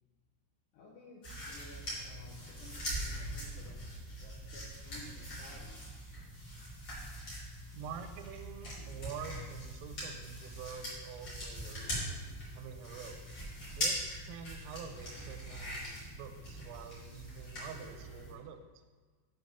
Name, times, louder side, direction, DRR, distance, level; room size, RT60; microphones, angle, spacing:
voice 1, 0.7-5.8, left 2 dB, 85° left, -4 dB, 2.5 m, -55 dB
sound 1, 1.2-18.3, equal, 40° left, 2.3 m, -42 dB
voice 2, 7.7-12.2 12.5-13.3 13.8-18.6, right 7 dB, 85° right, 8 dB, 3.2 m, -47 dB
8.2 x 4.2 x 5.2 m, 1.5 s
omnidirectional pair, 5.8 m